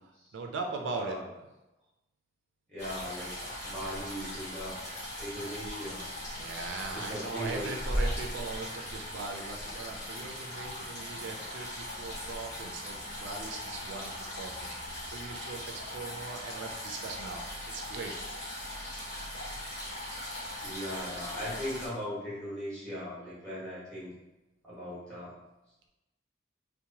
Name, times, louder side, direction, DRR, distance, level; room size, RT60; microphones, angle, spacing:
voice 1, 0.3-1.2 6.3-18.1, right 4 dB, 80° right, 2 dB, 0.3 m, -40 dB
voice 2, 0.9-1.3 2.7-3.3 3.6-4.8 5.2-6.0 6.9-7.7 20.2-24.1 24.6-25.4, equal, 5° left, -10 dB, 1.2 m, -39 dB
sound 1, 2.8-21.9, left 1 dB, 40° left, 1.0 m, -39 dB
2.8 x 2.1 x 2.7 m, 0.99 s
head